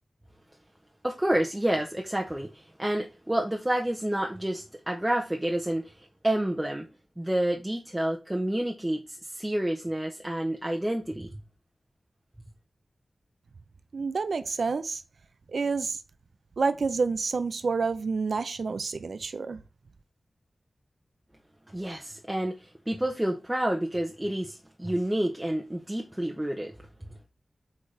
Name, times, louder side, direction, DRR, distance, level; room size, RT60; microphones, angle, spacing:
voice 1, 1.0-5.9 6.2-6.9 7.2-11.3 21.7-26.7, right 1 dB, 10° right, 0.8 m, -29 dB
voice 2, 13.9-15.0 15.5-16.0 16.6-19.6, right 4 dB, 75° right, 0.5 m, -28 dB
8.0 x 4.0 x 3.3 m
wide cardioid pair, 90°, 0 cm